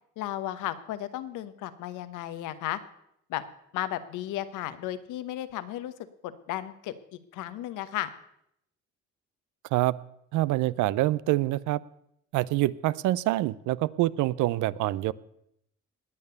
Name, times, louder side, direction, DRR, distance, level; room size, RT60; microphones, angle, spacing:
voice 1, 0.2-2.8 3.3-3.4 3.7-5.9 6.2-8.1, left 13 dB, 85° left, 12 dB, 1.1 m, -34 dB
voice 2, 10.3-11.8 12.3-15.1, right 16 dB, 75° right, 20 dB, 0.6 m, -26 dB
19.5 x 6.8 x 6.9 m, 0.76 s
cardioid pair, 85°, 30 cm